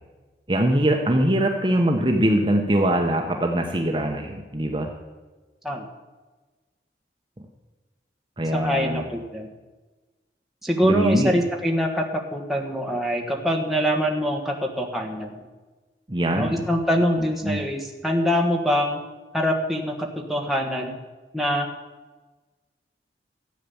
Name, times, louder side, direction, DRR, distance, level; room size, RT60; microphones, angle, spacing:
voice 1, 0.5-4.9 8.4-9.0 10.8-11.3 16.1-16.7 17.4-17.6, right 1 dB, 25° right, 2 dB, 0.9 m, -22 dB
voice 2, 8.5-9.5 10.6-15.4 16.3-19.0 19.3-21.0 21.3-21.7, equal, ahead, 0 dB, 1.4 m, -24 dB
13.5 x 8.4 x 7.0 m, 1.3 s
head